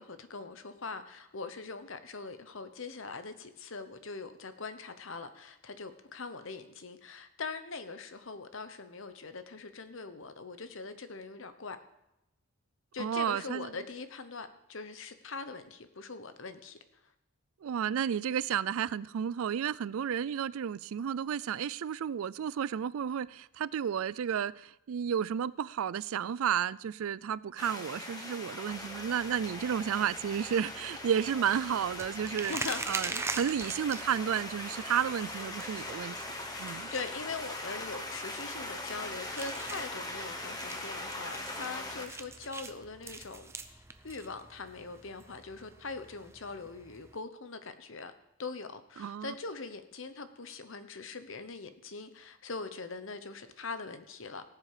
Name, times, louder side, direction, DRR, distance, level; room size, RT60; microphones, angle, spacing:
voice 1, 0.0-11.8 12.9-16.8 32.5-32.8 36.9-48.1 48.4-54.4, left 4 dB, 60° left, 1.0 m, -42 dB
voice 2, 13.0-13.7 17.6-32.5 32.9-36.9 49.0-49.3, right 8 dB, 70° right, 0.3 m, -32 dB
sound 1, 27.6-42.1, left 2 dB, 15° left, 1.2 m, -41 dB
sound 2, 28.7-47.2, right 3 dB, 10° right, 0.5 m, -44 dB
18.0 x 7.4 x 5.0 m
head